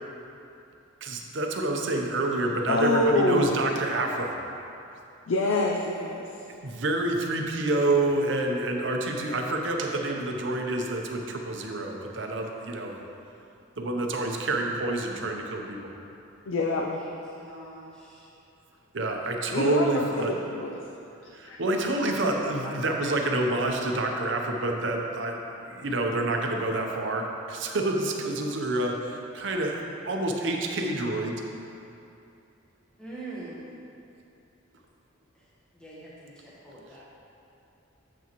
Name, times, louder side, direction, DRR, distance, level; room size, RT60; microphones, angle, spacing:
voice 1, 1.0-4.4 6.6-12.9 13.8-15.8 18.9-20.3 21.3-25.4 25.7-31.4, right 2 dB, 60° right, 2 dB, 0.8 m, -28 dB
voice 2, 2.7-3.8 5.3-6.3 16.5-17.0 19.5-20.8 21.4-21.6 22.0-22.1 22.6-22.7 23.6-23.7, left 2 dB, 70° left, 0 dB, 0.5 m, -26 dB
voice 3, 16.6-18.3 33.0-33.6 35.7-37.1, right 2 dB, 5° left, -8 dB, 1.2 m, -44 dB
8.3 x 7.2 x 3.0 m, 2.7 s
head